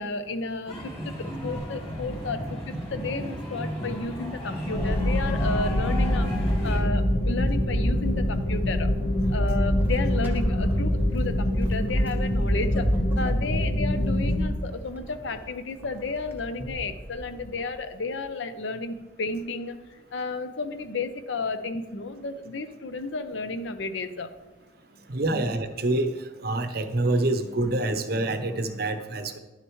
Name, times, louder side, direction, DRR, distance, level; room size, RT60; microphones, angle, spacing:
voice 1, 0.0-8.9 9.3-12.9 13.2-19.8 20.1-24.3 25.3-25.4, left 3 dB, 75° left, 10 dB, 0.6 m, -32 dB
sound 1, 0.7-6.8, left 1 dB, 30° left, 2.1 m, -34 dB
Vehicle / Accelerating revving vroom / Squeak, 1.3-18.2, right 1 dB, 10° right, 0.7 m, -42 dB
sound 2, 4.7-14.5, left 1 dB, 55° left, 1.0 m, -24 dB
voice 2, 25.1-26.1 26.4-29.4, right 2 dB, 55° right, 9 dB, 0.6 m, -26 dB
10.5 x 6.5 x 3.1 m, 1.1 s
head